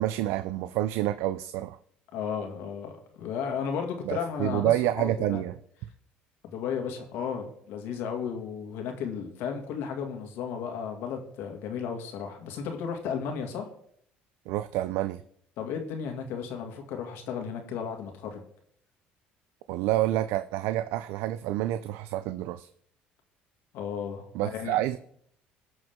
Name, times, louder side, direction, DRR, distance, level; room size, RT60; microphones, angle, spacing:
voice 1, 0.0-1.8 4.0-5.6 14.5-15.2 19.7-22.7 24.3-25.0, right 14 dB, 80° right, 12 dB, 0.4 m, -28 dB
voice 2, 2.1-5.4 6.5-13.7 15.6-18.4 23.7-24.8, left 7 dB, 75° left, 4 dB, 2.2 m, -34 dB
18.5 x 6.3 x 3.7 m, 0.66 s
supercardioid pair, 95°, 4 cm